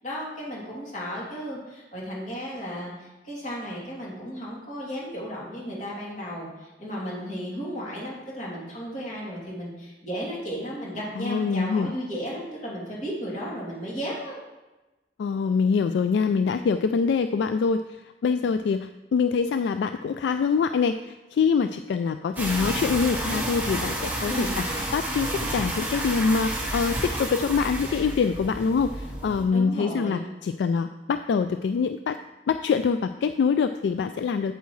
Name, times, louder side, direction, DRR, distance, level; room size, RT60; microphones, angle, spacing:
voice 1, 0.0-14.4 18.4-18.5 24.2-24.6 29.5-30.3, equal, 45° left, -5 dB, 2.8 m, -34 dB
voice 2, 11.2-11.9 15.2-17.8 18.2-32.2 32.5-34.5, left 5 dB, 75° left, 9 dB, 0.3 m, -25 dB
sound 1, 22.4-29.4, right 1 dB, 10° right, 1.6 m, -30 dB
8.2 x 8.1 x 3.2 m, 1.1 s
head